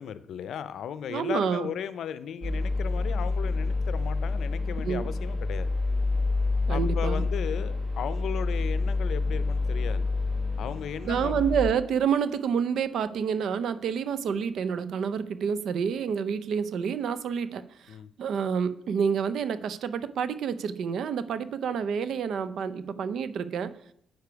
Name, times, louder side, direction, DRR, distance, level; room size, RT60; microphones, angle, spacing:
voice 1, 0.0-5.8 6.7-10.1 10.6-11.4 17.9-18.1, left 8 dB, 70° left, 14 dB, 0.5 m, -36 dB
voice 2, 1.1-1.7 4.8-5.1 6.7-7.2 11.1-23.7, right 7 dB, 70° right, 14 dB, 0.6 m, -28 dB
sound 1, 2.4-11.7, left 3 dB, 25° right, 1.6 m, -28 dB
8.0 x 6.7 x 4.7 m, 0.70 s
cardioid pair, 90°, 0 cm